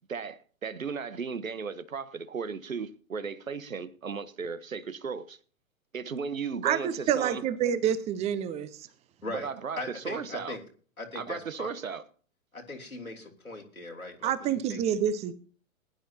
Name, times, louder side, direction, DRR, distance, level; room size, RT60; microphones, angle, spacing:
voice 1, 0.1-5.4 5.9-7.4 9.3-10.6 11.1-12.0, right 5 dB, 75° right, 1.2 m, -35 dB
voice 2, 6.6-8.7 14.2-15.3, right 9 dB, 15° right, 0.8 m, -27 dB
voice 3, 9.8-10.6 11.0-11.7 12.5-14.8, left 2 dB, 90° left, 3.3 m, -39 dB
19.5 x 11.0 x 2.8 m
figure-of-eight pair, 115°, 42 cm